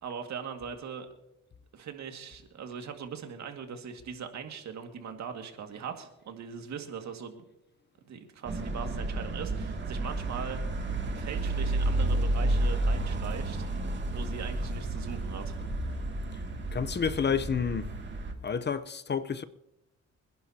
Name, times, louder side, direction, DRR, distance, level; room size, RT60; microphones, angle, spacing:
voice 1, 0.0-1.1 1.7-7.4 8.1-10.6 11.1-13.7 14.1-15.6, right 7 dB, 65° right, 2.1 m, -40 dB
sound 1, 8.4-18.3, right 2 dB, 40° right, 2.6 m, -31 dB
voice 2, 16.7-17.9 18.4-19.4, left 6 dB, 35° left, 0.8 m, -29 dB
26.0 x 11.0 x 2.9 m
cardioid pair, 90°, 30 cm